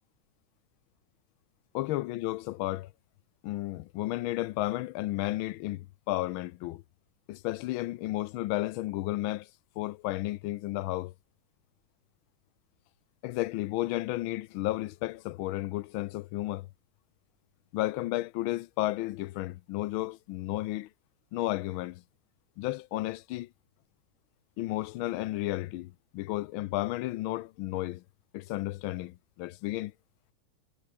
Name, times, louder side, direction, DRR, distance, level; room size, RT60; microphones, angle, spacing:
voice 1, 1.7-2.9 3.4-6.8 7.3-9.5 9.8-11.1 13.2-16.7 17.7-20.9 21.3-22.0 22.6-23.5 24.6-28.0 28.3-29.9, left 17 dB, 90° left, 1.4 m, -33 dB
omnidirectional pair, 2.2 m